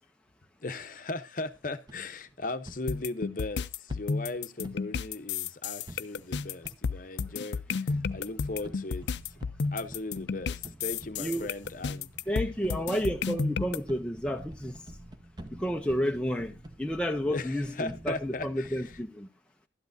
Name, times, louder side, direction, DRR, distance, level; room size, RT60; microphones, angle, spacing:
voice 1, 0.6-9.4 9.7-12.1 17.3-18.9, left 2 dB, 45° left, 0.8 m, -38 dB
sound 1, 1.9-2.7 3.9-4.7 5.9-6.4 6.6-6.7 7.9-19.1, right 1 dB, 25° right, 1.0 m, -48 dB
sound 2, 2.9-13.8, left 5 dB, 75° left, 0.4 m, -32 dB
voice 2, 12.3-14.7 15.5-19.3, equal, 5° left, 0.5 m, -31 dB
12.5 x 10.5 x 2.6 m
head